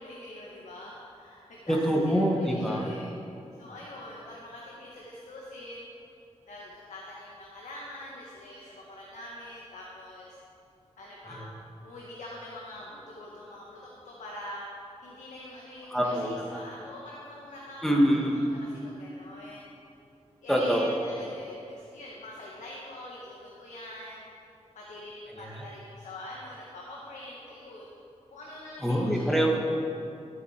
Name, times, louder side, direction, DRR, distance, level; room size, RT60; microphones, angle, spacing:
voice 1, 0.0-1.8 2.1-3.1 3.5-5.9 6.5-10.4 11.0-11.5 11.8-14.6 15.0-19.6 20.4-24.2 24.7-27.9 28.3-29.5, left 1 dB, 80° left, -4 dB, 1.6 m, -44 dB
voice 2, 1.7-2.9 11.3-11.4 15.9-16.6 17.8-18.4 20.5-21.0 25.3-25.7 28.8-29.6, equal, ahead, -1 dB, 1.5 m, -25 dB
14.0 x 8.6 x 4.5 m, 2.6 s
wide cardioid pair, 145°, 12 cm